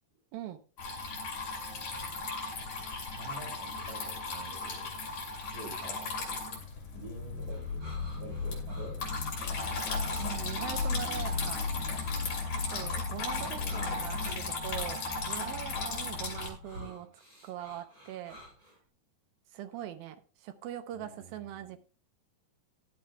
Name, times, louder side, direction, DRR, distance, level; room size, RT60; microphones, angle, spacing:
Water tap faucet / Trickle dribble, 0.8-16.5, left 3 dB, 45° left, 3.8 m, -37 dB
voice 1, 3.1-4.9 5.5-6.6 6.9-9.1 9.5-9.7 13.5-14.1 16.8-17.1 20.9-21.8, right 2 dB, 55° right, -1 dB, 4.3 m, -48 dB
sound 1, 7.0-16.8, left 4 dB, 70° left, 5.1 m, -37 dB
sound 2, 7.5-18.8, equal, 30° right, 6.1 m, -51 dB
voice 2, 10.2-11.7 12.5-15.0 15.3-17.1 17.4-18.4 19.5-21.8, right 11 dB, 75° right, 9 dB, 2.4 m, -41 dB
17.0 x 11.5 x 2.3 m, 0.35 s
omnidirectional pair, 4.7 m